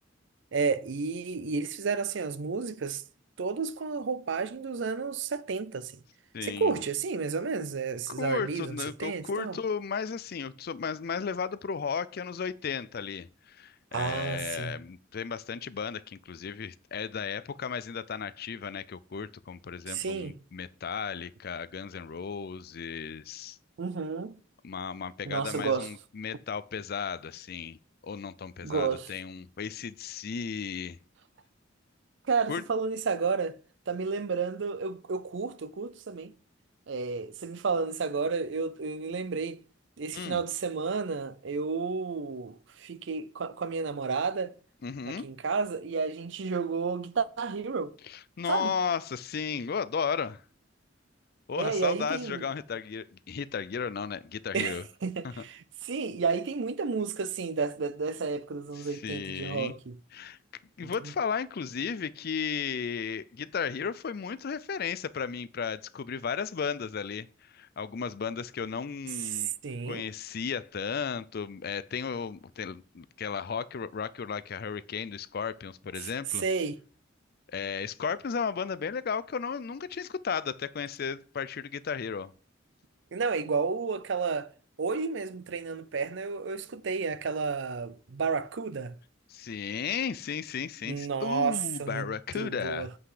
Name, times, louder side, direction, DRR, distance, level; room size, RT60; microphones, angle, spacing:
voice 1, 0.5-3.0 3.4-5.9 6.4-9.6 13.9-14.7 19.9-20.3 23.8-24.3 25.3-25.9 28.6-29.1 32.3-33.6 33.9-36.3 36.9-39.6 40.0-44.6 45.1-47.9 48.5-48.7 51.6-52.4 54.5-60.0 60.8-61.1 69.3-70.0 76.0-76.1 76.4-76.8 83.1-84.5 84.8-89.0 90.8-92.1 92.3-92.9, right 5 dB, 65° right, 0.5 m, -31 dB
voice 2, 6.3-6.7 8.1-23.6 24.6-27.8 28.0-31.0 32.5-32.6 40.1-40.4 44.8-45.3 48.1-50.4 51.5-54.8 55.2-55.3 58.8-59.7 60.1-60.4 60.8-69.5 69.9-76.4 77.5-82.3 89.3-92.9, left 6 dB, 50° left, 0.4 m, -34 dB
7.9 x 5.7 x 4.9 m
head